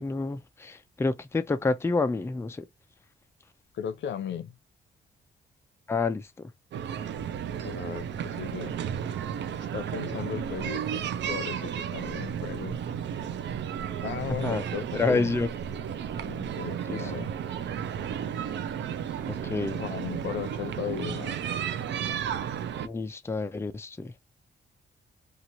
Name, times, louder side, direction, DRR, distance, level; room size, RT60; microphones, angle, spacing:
voice 1, 0.0-2.6 5.9-6.5 14.4-14.6 14.9-15.5 16.9-17.0 19.5-19.8 22.8-24.1, left 3 dB, 15° left, 0.4 m, -28 dB
voice 2, 3.7-4.5 7.6-8.7 9.7-12.7 14.0-15.3 16.2-17.3 19.8-21.4, left 9 dB, 75° left, 0.6 m, -36 dB
sound 1, 6.7-22.9, right 8 dB, 75° right, 0.5 m, -33 dB
2.9 x 2.5 x 2.9 m
cardioid pair, 95°, 19 cm